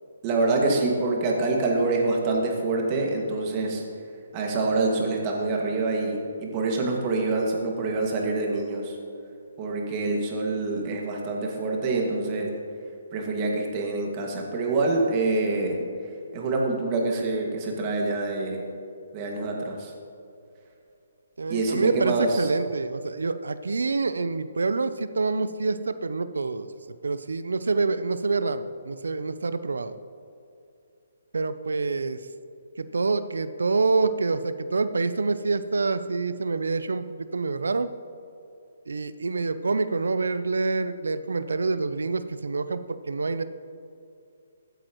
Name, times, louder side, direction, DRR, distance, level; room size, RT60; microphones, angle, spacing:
voice 1, 0.2-3.8 4.3-9.0 9.6-12.5 13.1-15.8 16.3-18.6 19.1-19.9 21.5-22.5, right 3 dB, 30° right, 0 dB, 2.0 m, -26 dB
voice 2, 21.4-26.7 27.0-30.0 31.3-32.2 32.8-37.9 38.9-43.4, right 3 dB, 85° right, 12 dB, 0.6 m, -26 dB
15.0 x 8.8 x 3.1 m, 2.6 s
hypercardioid pair, 150°, 0 cm